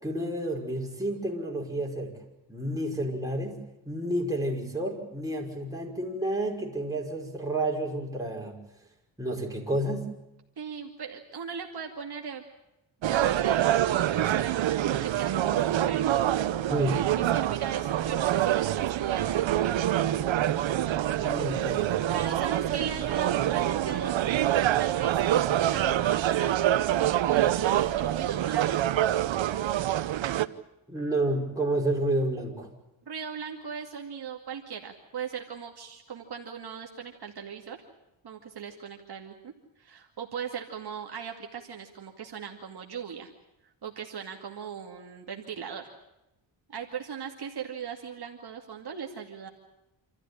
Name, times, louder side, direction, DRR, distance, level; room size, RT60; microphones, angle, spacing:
voice 1, 0.0-2.2 2.5-3.6 3.9-8.6 9.2-10.1 16.7-17.1 21.2-22.0 30.9-32.7, right 1 dB, 5° right, -1 dB, 5.6 m, -30 dB
voice 2, 10.6-12.4 13.0-16.2 17.2-20.2 22.1-24.4 24.8-26.7 27.0-28.9 33.1-37.8 38.2-43.3 43.6-45.9 46.7-49.5, right 7 dB, 55° right, 1 dB, 2.4 m, -38 dB
sound 1, 13.0-30.4, right 12 dB, 70° right, 0.9 m, -26 dB
27.5 x 14.0 x 9.9 m, 0.90 s
cardioid pair, 95°, 47 cm